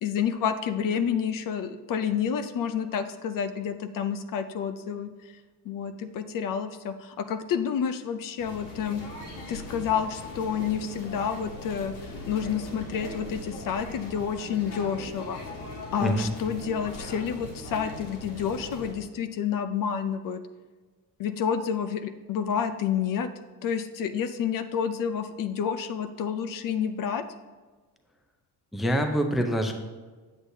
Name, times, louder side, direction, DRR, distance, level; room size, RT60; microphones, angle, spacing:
voice 1, 0.0-5.3 5.6-9.0 9.5-11.9 12.3-15.4 15.9-20.4 21.2-23.3 23.6-27.2, left 7 dB, 55° left, 10 dB, 0.5 m, -29 dB
sound 1, 8.4-18.9, left 2 dB, 75° left, 1.9 m, -40 dB
voice 2, 16.0-16.3 28.7-29.7, equal, ahead, 4 dB, 0.5 m, -25 dB
8.1 x 8.1 x 2.7 m, 1.3 s
cardioid pair, 145°, 40 cm